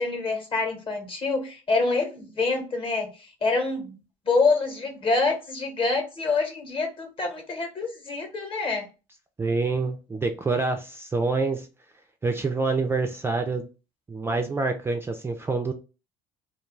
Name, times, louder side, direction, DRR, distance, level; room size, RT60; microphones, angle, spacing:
voice 1, 0.0-4.0 4.2-8.9, left 3 dB, 35° left, 0.9 m, -26 dB
voice 2, 9.4-11.7 12.2-13.7 14.1-15.7, right 3 dB, 15° right, 0.3 m, -26 dB
2.3 x 2.2 x 3.1 m
cardioid pair, 110°, 15 cm